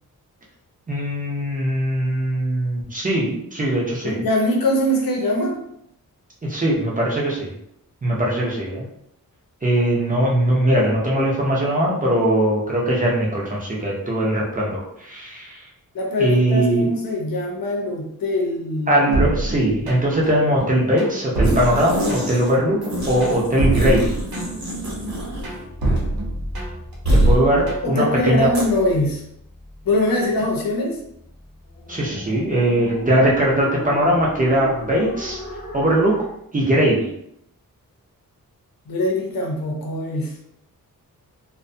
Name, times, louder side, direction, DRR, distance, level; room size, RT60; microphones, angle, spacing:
voice 1, 0.9-4.2 6.4-7.5 8.0-8.9 9.6-15.6 16.2-16.9 18.9-22.8 23.1-24.2 27.1-28.5 31.9-35.4 35.7-36.2 36.5-37.1, right 1 dB, 25° right, -4 dB, 0.5 m, -20 dB
voice 2, 4.0-5.6 15.9-19.0 27.8-29.2 29.8-31.0 38.9-40.4, left 1 dB, 75° left, 0 dB, 0.7 m, -22 dB
sound 1, 19.1-20.3 20.6-22.5 22.8-24.7 25.1-26.9 27.3-27.9, right 1 dB, 85° right, 0.7 m, -25 dB
sound 2, 21.4-22.5 22.8-25.6 25.8-26.0 27.0-27.4 28.5-28.6, equal, 50° right, 0.9 m, -23 dB
sound 3, 23.2-36.4, left 1 dB, 30° left, 0.7 m, -37 dB
2.5 x 2.2 x 2.6 m, 0.74 s
wide cardioid pair, 175°, 34 cm